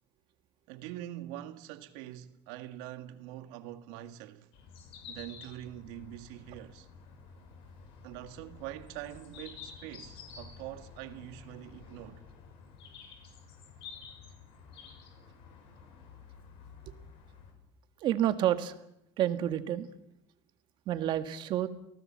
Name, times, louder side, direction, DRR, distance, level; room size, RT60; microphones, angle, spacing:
voice 1, 0.7-4.5 5.1-6.9 8.0-12.3, right 13 dB, 85° right, 1.9 m, -44 dB
sound 1, 4.5-17.5, left 6 dB, 60° left, 6.6 m, -51 dB
voice 2, 18.0-18.8 19.2-19.9 20.9-21.7, right 12 dB, 45° right, 1.7 m, -29 dB
29.5 x 18.0 x 7.5 m
cardioid pair, 160°, 11 cm